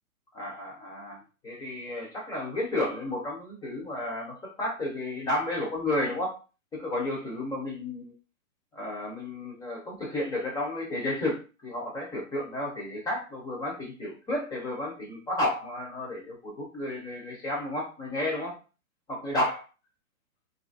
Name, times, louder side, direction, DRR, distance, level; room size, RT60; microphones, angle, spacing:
voice 1, 0.3-6.4 6.7-8.1 8.7-18.6 19.1-19.6, left 1 dB, 10° left, -2 dB, 0.6 m, -32 dB
2.6 x 2.6 x 2.5 m, 0.33 s
hypercardioid pair, 135°, 41 cm